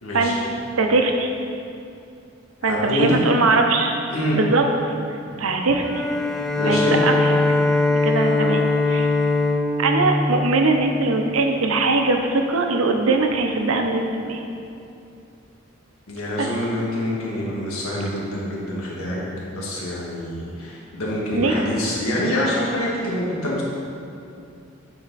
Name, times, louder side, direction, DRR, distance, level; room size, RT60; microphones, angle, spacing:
voice 1, 0.0-0.5 2.6-3.2 4.1-4.4 6.6-7.0 16.1-19.2 19.5-23.6, left 1 dB, 85° left, -5 dB, 1.6 m, -26 dB
voice 2, 0.8-1.3 2.6-3.9 4.3-4.9 5.4-5.8 6.7-7.4 7.9-9.1 9.8-14.4 16.4-16.5 21.3-21.6, right 3 dB, 80° right, 3 dB, 0.7 m, -21 dB
Bowed string instrument, 5.8-11.3, left 2 dB, ahead, 0.4 m, -21 dB
9.5 x 4.2 x 4.1 m, 2.6 s
head